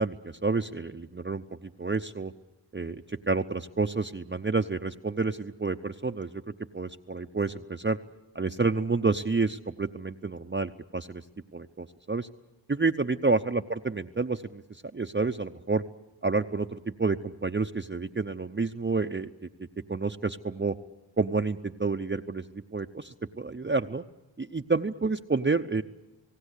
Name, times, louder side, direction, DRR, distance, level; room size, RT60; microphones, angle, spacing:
voice 1, 0.0-2.3 2.7-6.4 6.7-8.0 8.3-11.2 11.5-12.3 12.7-14.6 14.9-15.8 16.2-19.3 19.9-20.7 21.2-24.0 24.4-25.8, right 3 dB, 25° right, 5 dB, 0.8 m, -29 dB
28.0 x 18.0 x 8.3 m, 1.0 s
cardioid pair, 40°, 48 cm